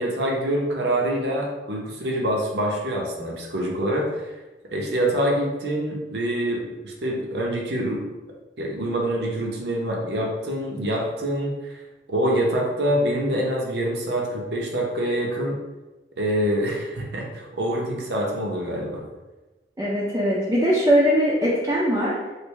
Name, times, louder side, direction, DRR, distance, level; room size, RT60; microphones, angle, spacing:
voice 1, 0.0-4.3 4.7-8.1 8.6-11.7 12.1-15.6 16.2-19.1, right 1 dB, 65° right, -2 dB, 0.7 m, -25 dB
voice 2, 19.8-22.1, equal, 20° right, -8 dB, 0.5 m, -20 dB
3.3 x 2.5 x 3.1 m, 1.1 s
head